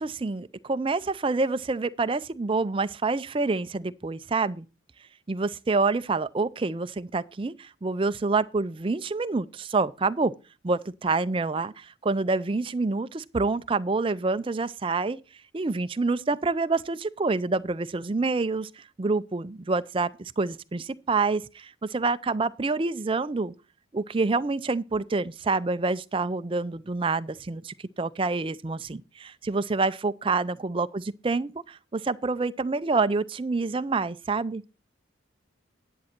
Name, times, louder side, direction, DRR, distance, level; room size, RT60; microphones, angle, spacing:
voice 1, 0.0-4.7 5.3-10.3 10.6-15.2 15.5-23.5 23.9-34.6, right 3 dB, 25° right, 0.4 m, -27 dB
10.5 x 8.4 x 4.4 m
head